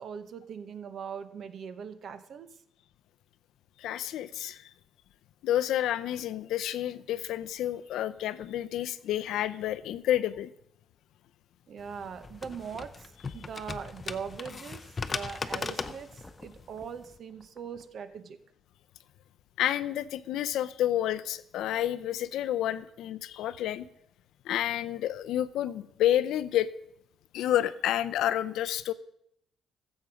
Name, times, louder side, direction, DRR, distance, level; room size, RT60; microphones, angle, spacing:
voice 1, 0.0-2.5 11.7-18.4, right 7 dB, 60° right, 11 dB, 0.9 m, -41 dB
voice 2, 3.8-4.7 5.4-10.5 19.6-23.9 24.5-26.7 27.3-28.9, left 12 dB, 80° left, 14 dB, 0.6 m, -29 dB
sound 1, 11.8-17.2, left 4 dB, 35° left, 0.6 m, -38 dB
sound 2, 15.1-18.1, left 2 dB, 10° left, 1.1 m, -51 dB
14.5 x 7.2 x 5.2 m, 0.75 s
cardioid pair, 95°, 0 cm